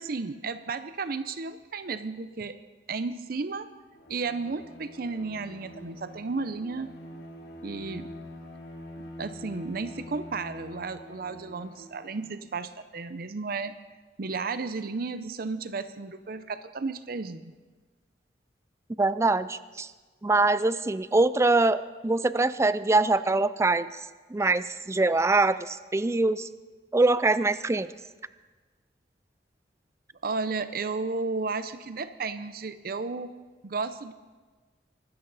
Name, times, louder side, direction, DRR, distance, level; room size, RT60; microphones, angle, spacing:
voice 1, 0.0-2.6 2.9-3.7 4.1-6.9 7.6-8.1 9.0-13.8 14.2-17.5 30.2-33.3 33.6-34.1, right 4 dB, 55° right, 12 dB, 0.6 m, -33 dB
Bowed string instrument, 3.9-12.4, left 1 dB, 85° left, 2.8 m, -45 dB
voice 2, 19.0-19.9 20.2-24.0 24.3-26.5 26.9-27.9, right 2 dB, 15° right, 15 dB, 0.4 m, -24 dB
24.0 x 12.5 x 4.1 m, 1.3 s
head